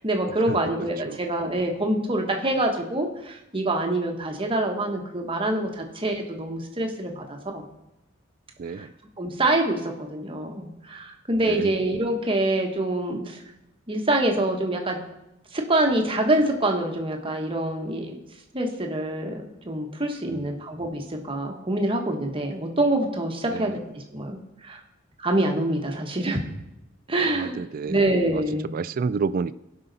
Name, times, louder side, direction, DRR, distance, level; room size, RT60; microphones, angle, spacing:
voice 1, 0.0-7.6 8.8-8.9 9.2-13.4 13.9-15.0 15.5-18.1 18.5-23.8 24.1-24.8 25.2-26.4 27.1-27.6 27.9-28.7, right 1 dB, 25° right, 2 dB, 1.2 m, -25 dB
voice 2, 27.2-28.0 28.3-28.4 28.7-29.5, right 5 dB, 45° right, 16 dB, 0.3 m, -29 dB
16.5 x 5.6 x 4.0 m, 0.90 s
head